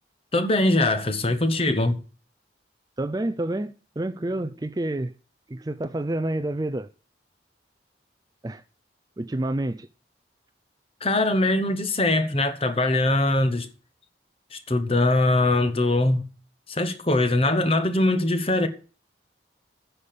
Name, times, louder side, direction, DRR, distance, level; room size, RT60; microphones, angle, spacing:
voice 1, 0.3-2.0 11.0-13.7 14.5-16.3 16.7-18.7, left 2 dB, 30° left, 1.2 m, -22 dB
voice 2, 3.0-5.1 5.5-6.9 8.4-8.6 9.2-9.9, right 1 dB, 20° right, 0.4 m, -28 dB
9.6 x 6.9 x 8.4 m
head